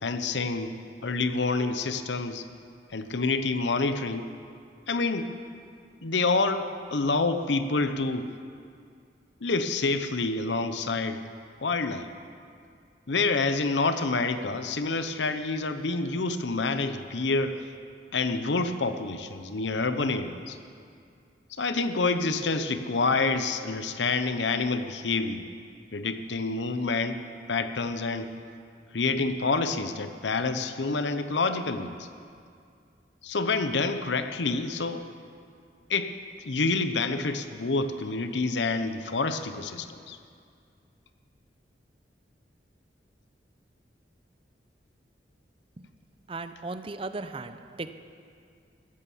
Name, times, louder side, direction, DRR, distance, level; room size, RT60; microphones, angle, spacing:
voice 1, 0.0-0.8 1.0-2.4 2.9-4.3 4.9-5.3 6.0-8.3 9.4-11.2 11.6-12.1 13.1-17.6 18.1-20.6 21.5-25.4 25.9-27.2 27.5-28.3 28.9-32.1 33.2-35.0 35.9-36.2 36.4-40.2, left 3 dB, 85° left, 10 dB, 0.8 m, -27 dB
voice 2, 46.3-47.9, right 3 dB, 30° right, 11 dB, 0.5 m, -36 dB
15.0 x 11.0 x 7.2 m, 2.3 s
head